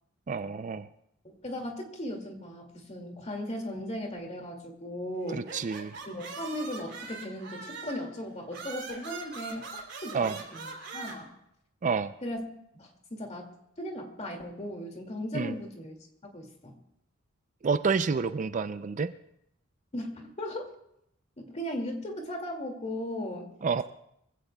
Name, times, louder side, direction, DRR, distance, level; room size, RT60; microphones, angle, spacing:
voice 1, 0.3-0.9 5.3-5.9 10.1-10.4 11.8-12.1 15.3-15.5 17.6-19.1 23.6-23.8, right 5 dB, 40° right, 12 dB, 0.4 m, -29 dB
voice 2, 1.2-5.5 6.1-11.3 12.2-12.4 12.7-13.4 13.8-15.9 16.3-16.8 19.9-20.7 21.4-23.5, left 1 dB, 35° left, 2 dB, 2.3 m, -37 dB
sound 1, 5.3-8.1 8.5-11.2, right 4 dB, 55° right, 3.1 m, -41 dB
24.5 x 16.0 x 2.3 m, 0.78 s
head